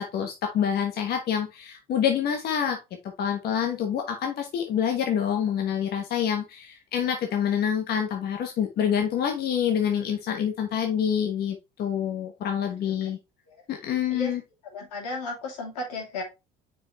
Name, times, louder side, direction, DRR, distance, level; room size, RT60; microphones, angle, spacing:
voice 1, 0.0-2.8 3.2-13.2 13.7-14.4, left 8 dB, 55° left, 4 dB, 1.2 m, -27 dB
voice 2, 14.7-16.2, left 2 dB, 90° left, 0 dB, 2.7 m, -34 dB
6.3 x 4.7 x 3.1 m, 0.24 s
supercardioid pair, 75°, 19 cm